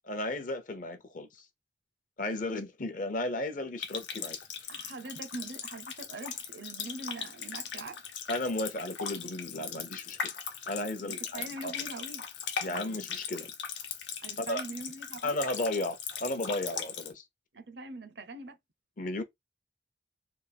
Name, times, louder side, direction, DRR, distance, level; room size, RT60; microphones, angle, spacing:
voice 1, 0.0-1.4 2.2-4.4 4.6-4.7 8.3-10.2 10.7-11.7 12.6-13.5 14.4-14.6 15.2-17.2 19.0-19.2, left 1 dB, 45° left, 0.6 m, -34 dB
Water tap faucet, 3.8-17.1, left 7 dB, 85° left, 0.8 m, -39 dB
voice 2, 4.7-8.0 11.0-12.3 14.2-15.4 17.5-18.6, right 2 dB, 70° right, 0.6 m, -43 dB
3.4 x 2.4 x 3.3 m
head